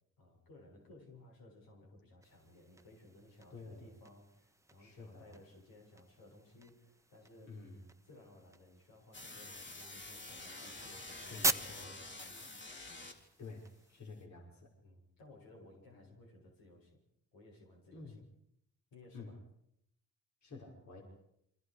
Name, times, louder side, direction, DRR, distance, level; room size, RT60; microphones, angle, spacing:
voice 1, 0.2-7.6 8.0-12.6 14.8-17.0 17.3-18.3 18.9-19.4, left 2 dB, 80° left, 0 dB, 7.4 m, -59 dB
sound 1, 2.2-14.0, right 2 dB, 10° right, 1.1 m, -44 dB
voice 2, 3.5-3.9 4.8-5.4 7.4-7.8 11.3-11.9 13.4-13.6 13.9-14.7 15.9-16.1 17.9-18.2 19.1-19.3 20.4-21.0, left 3 dB, 50° left, 0 dB, 5.7 m, -50 dB
sound 2, 9.1-13.4, left 2 dB, 30° left, 3.4 m, -48 dB
28.0 x 25.0 x 5.0 m, 0.75 s
cardioid pair, 80°, 35 cm